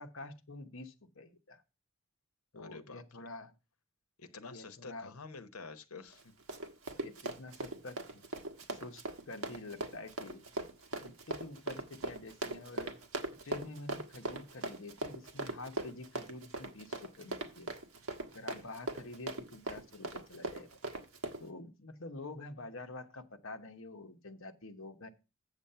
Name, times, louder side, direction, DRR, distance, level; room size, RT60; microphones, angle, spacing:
voice 1, 0.0-1.6 2.5-3.5 4.5-5.1 7.0-8.3 8.7-10.4 11.0-12.9 13.4-17.7 18.3-20.7 21.4-25.1, left 2 dB, 60° left, 1.1 m, -47 dB
voice 2, 2.5-3.2 4.2-6.3, left 4 dB, 85° left, 1.0 m, -49 dB
Run, 6.1-21.4, right 2 dB, 75° right, 1.4 m, -40 dB
8.2 x 7.2 x 5.6 m
head